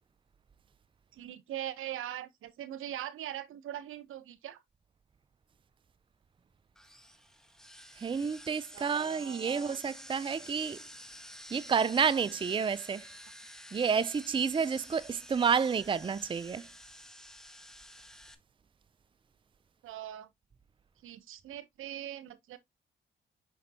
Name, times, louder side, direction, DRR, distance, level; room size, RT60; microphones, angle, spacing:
voice 1, 1.1-4.6 8.7-9.8 19.8-20.3 21.0-22.6, right 12 dB, 80° right, 0.9 m, -41 dB
sound 1, 6.8-18.3, equal, 5° left, 1.3 m, -50 dB
voice 2, 8.0-10.8 11.5-13.0 13.7-16.7, right 6 dB, 25° right, 0.5 m, -30 dB
6.4 x 5.4 x 2.8 m
supercardioid pair, 60°, 21 cm